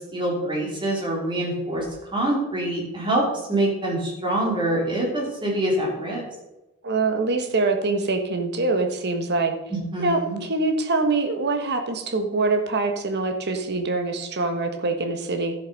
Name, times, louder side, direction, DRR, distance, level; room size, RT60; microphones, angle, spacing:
voice 1, 0.1-1.8 2.1-3.2 3.5-6.2 9.7-10.4, right 1 dB, 20° right, -2 dB, 3.2 m, -25 dB
voice 2, 6.8-9.5 10.0-15.5, right 3 dB, 50° right, 6 dB, 1.3 m, -24 dB
12.5 x 6.9 x 5.2 m, 1.0 s
head